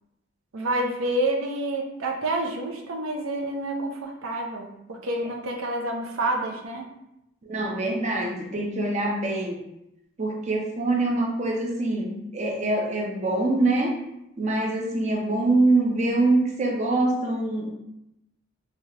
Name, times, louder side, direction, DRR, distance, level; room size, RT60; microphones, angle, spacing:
voice 1, 0.5-6.8, right 1 dB, 85° right, 2 dB, 0.6 m, -28 dB
voice 2, 7.5-9.6 10.2-14.0 14.4-17.7, right 2 dB, 35° right, 1 dB, 0.5 m, -24 dB
3.2 x 2.3 x 2.8 m, 0.85 s
head